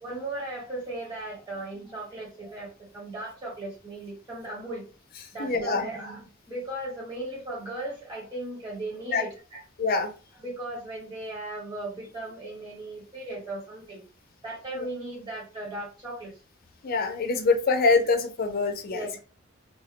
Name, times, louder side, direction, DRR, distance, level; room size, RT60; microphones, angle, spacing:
voice 1, 0.0-4.8 5.3-9.6 10.4-14.0 14.4-16.3 18.9-19.2, right 1 dB, 20° right, -4 dB, 1.1 m, -37 dB
voice 2, 5.4-5.9 9.1-9.2 9.8-10.1 14.7-14.9 16.8-19.1, left 4 dB, 45° left, 6 dB, 0.4 m, -24 dB
2.2 x 2.1 x 2.8 m, 0.34 s
head